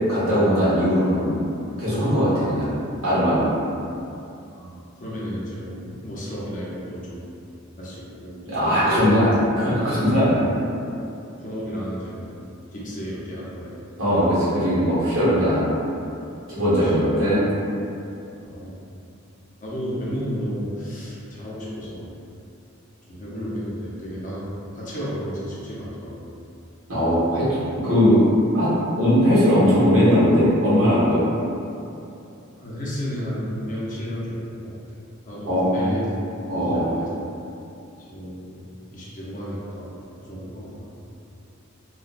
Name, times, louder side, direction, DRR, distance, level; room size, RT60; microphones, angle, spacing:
voice 1, 0.1-1.4 1.8-2.7 3.0-3.5 8.4-10.5 14.0-15.8 16.5-17.4 26.9-27.5 27.8-28.2 28.5-28.7 29.0-31.3 35.4-36.0 36.5-36.8, equal, 75° right, -11 dB, 1.2 m, -19 dB
voice 2, 4.5-7.2 7.8-8.4 8.8-9.1 10.8-11.0 11.4-12.3 12.7-13.7 16.6-17.1 18.4-18.8 19.6-22.1 23.1-26.3 32.2-34.7 35.3-36.1 36.6-37.1 38.0-38.6 38.9-39.9 40.2-40.9, equal, 40° left, -7 dB, 0.6 m, -33 dB
2.9 x 2.1 x 2.4 m, 2.6 s
head